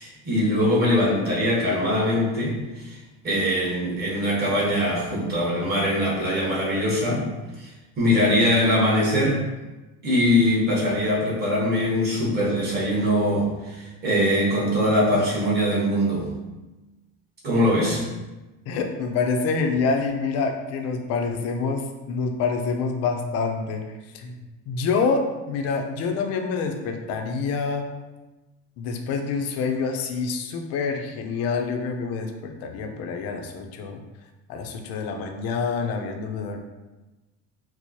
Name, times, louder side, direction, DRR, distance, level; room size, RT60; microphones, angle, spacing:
voice 1, 0.0-3.0 3.2-7.3 7.6-7.7 8.0-9.4 10.0-16.3 17.4-18.0, left 1 dB, 30° right, -5 dB, 1.1 m, -22 dB
voice 2, 18.7-27.9 28.8-34.0 34.5-36.6, left 4 dB, 55° left, 4 dB, 0.5 m, -27 dB
4.5 x 2.0 x 2.8 m, 1.1 s
cardioid pair, 150°, 31 cm